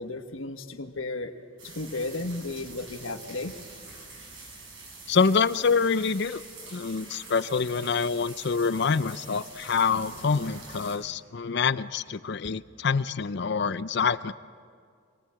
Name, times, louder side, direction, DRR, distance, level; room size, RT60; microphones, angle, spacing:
voice 1, 0.0-1.3 1.6-3.5, left 2 dB, 85° left, 6 dB, 1.4 m, -34 dB
sound 1, 1.6-11.0, right 3 dB, 65° right, 6.7 m, -45 dB
voice 2, 5.1-6.4 6.7-14.3, left 5 dB, 60° left, 14 dB, 0.6 m, -26 dB
26.5 x 19.5 x 7.7 m, 2.2 s
head